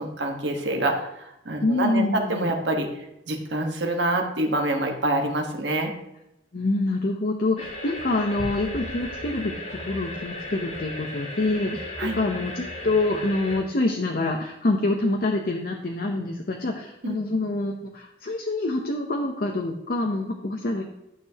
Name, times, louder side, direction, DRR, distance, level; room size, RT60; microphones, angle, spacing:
voice 1, 0.0-5.9 12.0-12.2 17.0-17.2, right 1 dB, 75° right, 3 dB, 1.3 m, -26 dB
voice 2, 1.6-2.5 6.5-20.8, left 2 dB, 55° left, 2 dB, 0.7 m, -26 dB
sound 1, 7.6-13.6, left 1 dB, 35° left, 1.9 m, -36 dB
12.0 x 6.7 x 2.8 m, 0.86 s
head